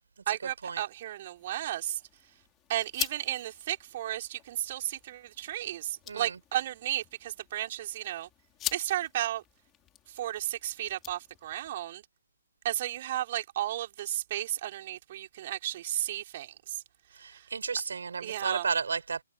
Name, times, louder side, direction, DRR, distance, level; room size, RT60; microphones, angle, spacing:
voice 1, 0.3-2.0 2.7-8.3 8.7-9.4 10.1-12.0 12.6-16.8 17.3-17.4 18.2-18.7, right 13 dB, 40° right, 4.9 m, -34 dB
sound 1, 1.3-11.7, left 12 dB, 15° left, 5.9 m, -44 dB
voice 2, 17.2-19.2, right 5 dB, 65° right, 6.3 m, -32 dB
figure-of-eight pair, 135°, 0 cm